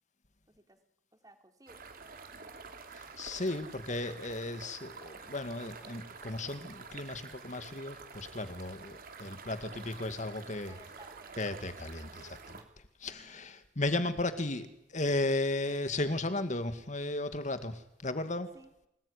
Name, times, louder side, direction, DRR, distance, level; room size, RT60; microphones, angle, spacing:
voice 1, 0.5-0.8 1.1-2.7 9.4-9.8 10.5-11.4 13.1-13.5 18.5-18.7, right 1 dB, 20° right, 6 dB, 3.5 m, -59 dB
sound 1, 1.7-12.6, right 4 dB, 55° right, 3.1 m, -49 dB
voice 2, 3.2-10.8 11.4-12.6 13.0-18.5, left 2 dB, 40° left, 10 dB, 2.2 m, -35 dB
27.0 x 19.5 x 10.0 m, 0.83 s
head